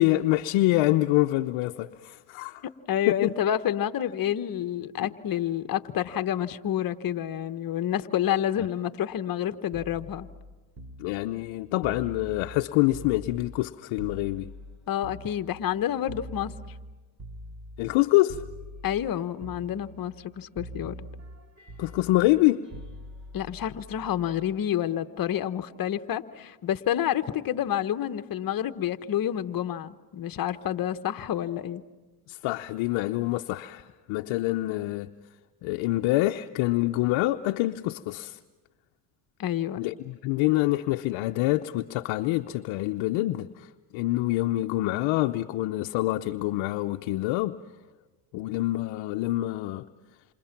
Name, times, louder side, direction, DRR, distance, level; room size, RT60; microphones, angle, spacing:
voice 1, 0.0-2.6 3.1-3.3 5.0-5.1 8.6-8.7 11.0-14.5 17.8-18.4 21.8-22.6 32.3-35.1 35.6-38.4 39.8-47.6 48.3-49.9, left 17 dB, 70° left, 0.8 m, -26 dB
voice 2, 2.9-10.3 14.9-16.7 18.8-21.1 23.3-31.8 39.4-39.9, left 10 dB, 45° left, 1.1 m, -29 dB
sound 1, 9.7-13.7 14.0-18.0 18.3-19.1 19.4-20.3 20.6-24.6 25.8-26.0, equal, 30° right, 3.2 m, -44 dB
28.5 x 27.5 x 5.9 m
supercardioid pair, 80°, 49 cm